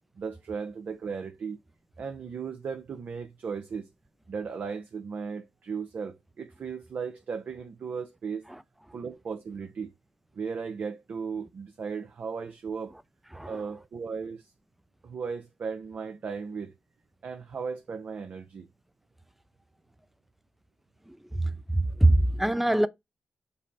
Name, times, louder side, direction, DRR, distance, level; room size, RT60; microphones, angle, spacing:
voice 1, 0.2-1.6 2.0-3.9 4.3-8.4 8.9-9.9 10.3-12.9 13.5-14.5 15.0-16.7 17.2-18.7, right 5 dB, 65° right, 0.6 m, -36 dB
voice 2, 21.1-22.9, right 1 dB, 5° right, 0.5 m, -24 dB
5.3 x 2.1 x 4.1 m
supercardioid pair, 45°, 3 cm